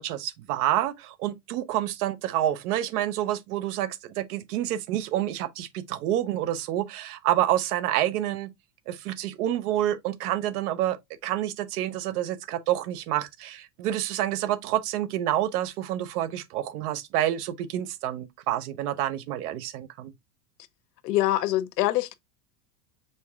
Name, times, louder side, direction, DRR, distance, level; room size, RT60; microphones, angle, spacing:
voice 1, 0.0-8.5 8.9-11.0 11.2-20.1, right 13 dB, 65° right, 0.7 m, -28 dB
voice 2, 21.0-22.1, left 15 dB, 75° left, 0.7 m, -24 dB
5.3 x 3.4 x 2.4 m
hypercardioid pair, 100°, 48 cm